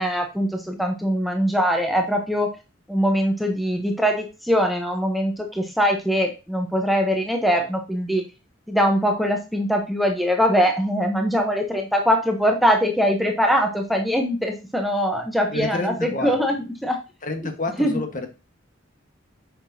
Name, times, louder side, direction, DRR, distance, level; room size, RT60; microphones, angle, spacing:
voice 1, 0.0-2.5 2.9-8.2 8.7-16.6 16.8-17.0 17.8-18.0, equal, ahead, 2 dB, 0.8 m, -22 dB
voice 2, 15.5-16.4 17.2-18.3, left 2 dB, 40° left, 5 dB, 1.3 m, -29 dB
8.7 x 5.9 x 2.7 m, 0.29 s
head